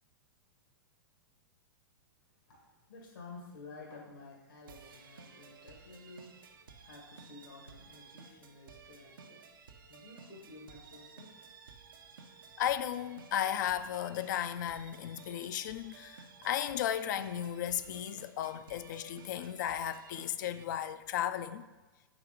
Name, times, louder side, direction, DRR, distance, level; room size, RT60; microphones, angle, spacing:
voice 1, 2.5-9.4 9.9-11.4, left 3 dB, 80° left, 1.7 m, -52 dB
sound 1, 4.7-20.6, right 5 dB, 85° right, 0.7 m, -55 dB
voice 2, 12.6-21.7, left 10 dB, 60° left, 0.4 m, -35 dB
5.0 x 3.9 x 5.1 m
hypercardioid pair, 125°, 11 cm